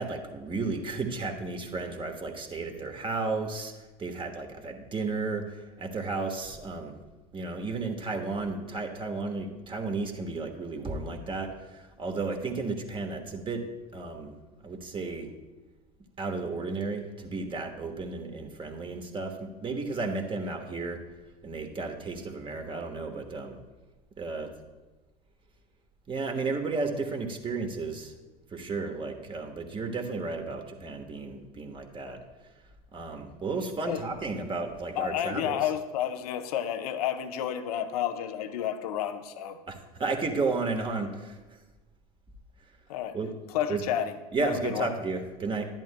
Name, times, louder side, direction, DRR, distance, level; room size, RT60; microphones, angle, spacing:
voice 1, 0.0-3.7 4.0-7.0 7.3-13.6 13.9-14.3 14.6-15.3 16.2-21.0 21.4-23.6 24.2-24.5 26.1-28.1 28.5-32.2 32.9-35.6 39.7-41.6 43.1-43.3 43.7-43.8 44.3-45.7, right 3 dB, 25° right, 4 dB, 1.4 m, -33 dB
voice 2, 35.0-39.6 42.9-43.2 43.5-44.9, left 10 dB, 75° left, 9 dB, 0.7 m, -31 dB
11.5 x 10.5 x 2.2 m, 1.2 s
hypercardioid pair, 80°, 20 cm